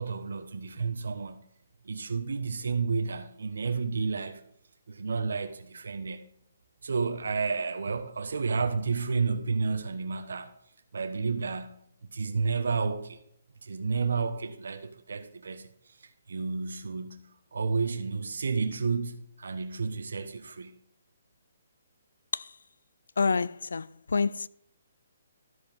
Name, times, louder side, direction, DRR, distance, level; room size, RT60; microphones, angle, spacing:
voice 1, 0.0-1.4 1.8-4.4 4.9-6.3 6.8-10.5 10.9-13.2 13.6-15.7 16.3-20.8, right 4 dB, 85° right, 1.2 m, -31 dB
voice 2, 23.2-23.9 24.1-24.5, left 4 dB, 90° left, 0.4 m, -26 dB
13.0 x 7.9 x 3.5 m
hypercardioid pair, 165°, 0 cm